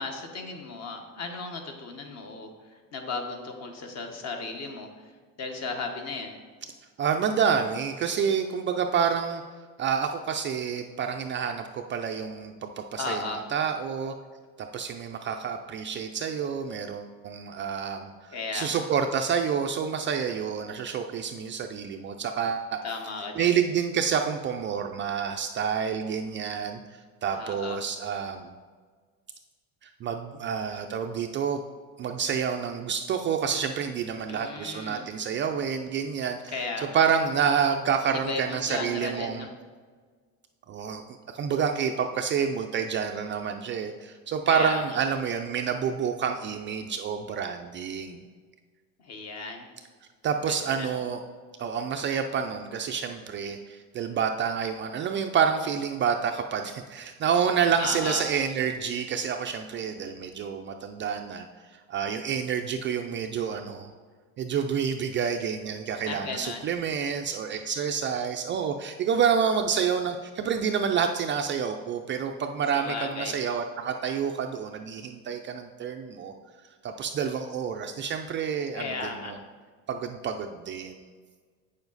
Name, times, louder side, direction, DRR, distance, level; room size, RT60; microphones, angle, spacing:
voice 1, 0.0-5.0 5.4-6.4 13.0-13.4 18.3-18.8 22.8-23.6 27.3-27.8 34.3-35.0 36.5-37.0 38.3-39.5 44.5-44.8 49.0-49.7 50.5-50.9 57.8-58.2 66.1-66.7 72.7-73.3 78.7-79.3, left 3 dB, 40° left, 4 dB, 1.3 m, -35 dB
voice 2, 7.0-9.4 9.8-13.2 13.5-14.1 14.7-18.1 18.5-22.8 23.4-26.8 27.2-28.6 29.8-31.6 32.0-39.5 40.7-41.0 41.3-48.2 50.2-51.2 51.6-61.5 61.9-63.9 64.4-76.3 76.8-79.4 79.9-81.0, right 7 dB, 30° right, 4 dB, 0.4 m, -28 dB
8.7 x 7.0 x 4.0 m, 1.6 s
cardioid pair, 145°, 38 cm